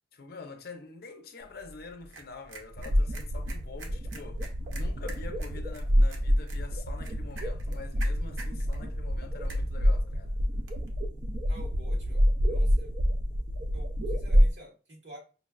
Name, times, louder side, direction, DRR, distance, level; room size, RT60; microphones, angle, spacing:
voice 1, 0.1-10.3, left 4 dB, 55° left, 0.6 m, -46 dB
sound 1, 1.4-10.9, right 2 dB, 90° right, 0.8 m, -50 dB
sound 2, 2.8-14.5, equal, 40° right, 0.3 m, -27 dB
voice 2, 11.4-12.9 13.7-15.2, right 1 dB, 70° right, 1.3 m, -49 dB
5.2 x 2.3 x 2.3 m
head